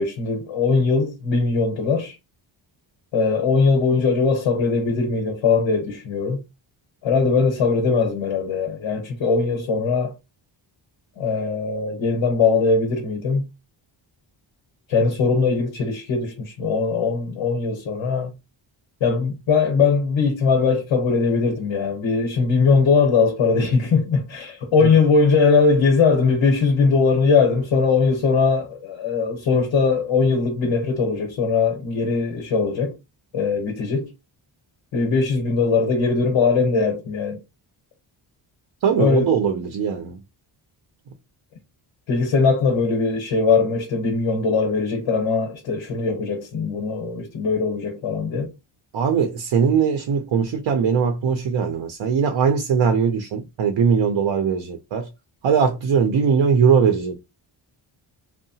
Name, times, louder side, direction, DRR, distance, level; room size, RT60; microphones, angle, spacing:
voice 1, 0.0-2.1 3.1-6.4 7.0-10.1 11.2-13.5 14.9-18.3 19.0-33.0 33.3-34.1 34.9-37.4 39.0-39.3 42.1-48.5, left 4 dB, 75° left, 0.9 m, -20 dB
voice 2, 38.8-40.2 48.9-55.1 55.4-57.2, right 6 dB, 65° right, 0.6 m, -20 dB
2.7 x 2.1 x 2.7 m
wide cardioid pair, 165°, 49 cm